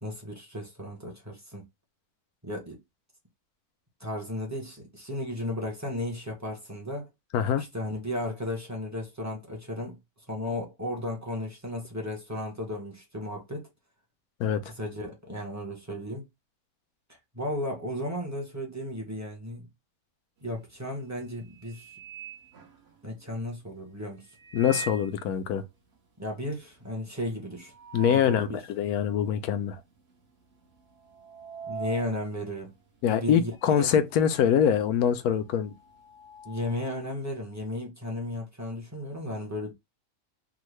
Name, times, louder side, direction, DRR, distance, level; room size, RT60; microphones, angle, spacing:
voice 1, 0.0-1.6 2.4-2.8 4.0-7.1 7.6-10.0 10.3-13.7 14.6-16.2 17.3-19.7 20.4-21.9 23.0-24.2 26.2-27.7 28.1-28.6 31.7-32.7 33.1-33.9 36.4-39.7, left 1 dB, 15° right, 0.7 m, -34 dB
sound 1, 20.5-20.8 21.2-23.3 24.3-25.2 25.6-25.7 25.9-26.0 26.4-28.6 29.0-29.1 29.9-30.3 30.5-33.8 34.1-37.1, right 5 dB, 50° right, 1.0 m, -43 dB
voice 2, 24.5-25.6 27.9-29.8 33.0-35.7, left 8 dB, 85° left, 1.1 m, -24 dB
3.7 x 2.2 x 3.1 m
omnidirectional pair, 1.6 m